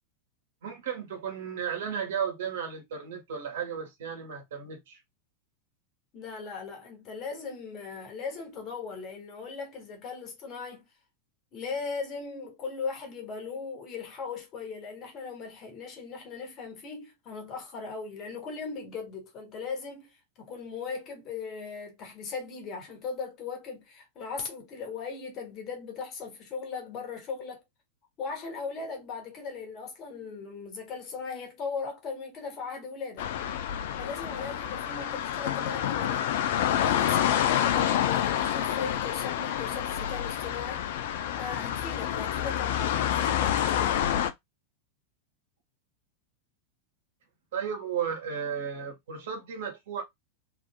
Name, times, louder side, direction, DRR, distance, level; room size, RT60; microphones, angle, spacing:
voice 1, 0.6-5.0 47.5-50.0, right 7 dB, 60° right, 1.5 m, -34 dB
voice 2, 6.1-10.9 11.5-27.6 28.2-33.3 34.0-36.4 36.8-41.1 41.4-44.0, left 5 dB, 35° left, 1.5 m, -38 dB
sound 1, 33.2-44.3, left 10 dB, 55° left, 0.5 m, -28 dB
3.5 x 3.3 x 2.3 m
figure-of-eight pair, 90°, 0 cm